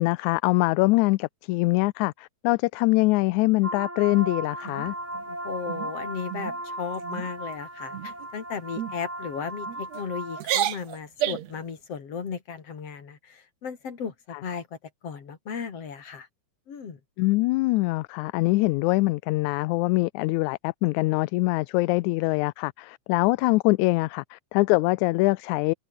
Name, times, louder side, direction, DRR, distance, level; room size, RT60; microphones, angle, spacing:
voice 1, 0.0-4.9 17.2-25.7, left 22 dB, 85° left, 1.9 m, -23 dB
sound 1, 3.6-10.4, right 1 dB, 5° right, 1.7 m, -36 dB
sound 2, 4.6-5.2 5.7-5.9 6.3-6.6 6.9-7.3 7.9-8.3 8.8-8.9 9.7-10.0 10.4-11.6, right 12 dB, 70° right, 2.3 m, -31 dB
voice 2, 5.3-14.7 15.0-16.3 16.7-17.0, left 6 dB, 55° left, 4.0 m, -35 dB
omnidirectional pair, 3.4 m